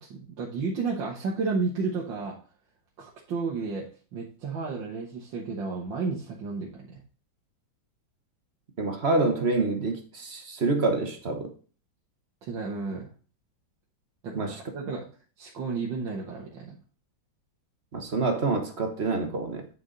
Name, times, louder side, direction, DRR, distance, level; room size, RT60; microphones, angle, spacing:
voice 1, 0.0-2.4 3.0-3.9 4.1-7.0 12.4-13.1 14.2-15.0 15.4-16.8, right 4 dB, 70° right, 2.0 m, -32 dB
voice 2, 8.8-11.5 14.3-14.6 17.9-19.7, right 3 dB, 35° right, 1.3 m, -27 dB
9.6 x 4.8 x 3.9 m
omnidirectional pair, 2.1 m